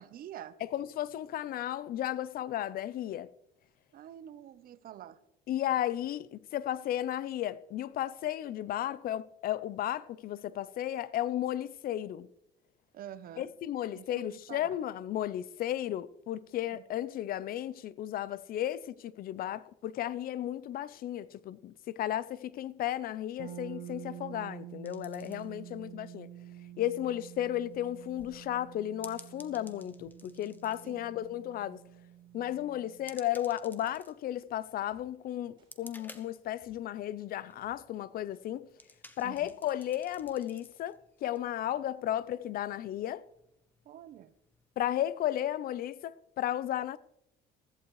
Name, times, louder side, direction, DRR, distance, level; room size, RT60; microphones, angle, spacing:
voice 1, 0.0-0.6 3.9-5.2 12.9-13.5 13.9-14.8 16.7-16.8 25.2-25.8 30.8-31.1 39.2-39.5 43.8-44.3, right 11 dB, 60° right, 0.8 m, -47 dB
voice 2, 0.6-3.3 5.5-12.3 13.4-26.3 26.8-31.8 32.3-38.7 39.2-43.2 44.8-47.0, left 12 dB, 60° left, 0.5 m, -34 dB
sound 1, 23.4-33.2, right 11 dB, 80° right, 1.0 m, -48 dB
sound 2, 24.9-44.8, left 2 dB, 10° left, 1.1 m, -58 dB
sound 3, 34.9-35.0 35.6-35.7 36.6-37.1 37.6-37.7 38.3-38.4 39.0-39.1 39.3-39.8 40.2-40.3, equal, 30° right, 6.3 m, -67 dB
15.0 x 14.5 x 3.1 m
cardioid pair, 110°, 17 cm